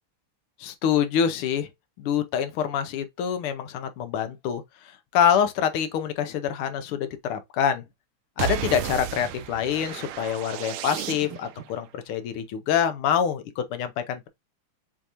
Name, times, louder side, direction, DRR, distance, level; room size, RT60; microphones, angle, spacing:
voice 1, 0.6-1.7 2.0-7.8 8.4-14.3, left 8 dB, 85° left, 1.6 m, -26 dB
sound 1, 8.4-11.6, right 11 dB, 85° right, 1.5 m, -33 dB
6.8 x 2.5 x 2.9 m
omnidirectional pair, 2.3 m